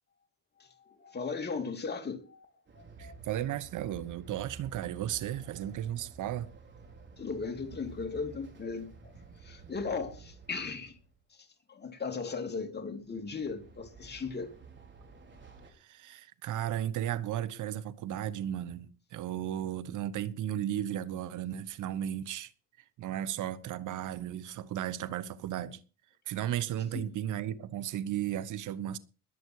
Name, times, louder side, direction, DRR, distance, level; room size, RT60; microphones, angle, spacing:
voice 1, 0.6-3.2 7.2-9.1 9.4-10.9 11.7-14.5 26.9-27.0, left 4 dB, 35° left, 3.0 m, -37 dB
Train, 2.7-11.1 13.0-15.7, right 4 dB, 40° right, 4.5 m, -51 dB
voice 2, 3.0-6.5 15.8-22.5 23.0-25.8 26.3-29.0, right 11 dB, 80° right, 1.1 m, -35 dB
21.0 x 8.1 x 4.8 m
cardioid pair, 90°, 30 cm